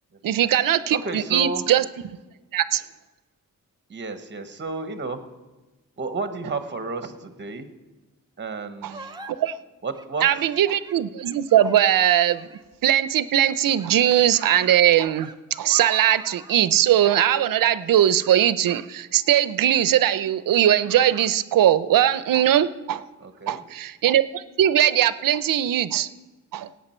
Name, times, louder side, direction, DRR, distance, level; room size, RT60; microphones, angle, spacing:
voice 1, 0.2-1.8 2.5-2.8 8.8-8.9 9.3-9.6 10.2-12.5 12.8-15.3 15.6-23.0 23.5-26.1 26.5-26.7, right 11 dB, 80° right, 14 dB, 0.6 m, -20 dB
voice 2, 0.9-1.6 3.9-5.2 6.0-7.7 8.4-9.1 9.8-10.2 23.2-23.6, right 3 dB, 35° right, 9 dB, 1.0 m, -31 dB
sound 1, 8.9-9.3 9.9-12.8 13.4-16.6, right 2 dB, 15° right, 0.5 m, -44 dB
17.5 x 8.5 x 4.4 m, 1.1 s
wide cardioid pair, 145°, 33 cm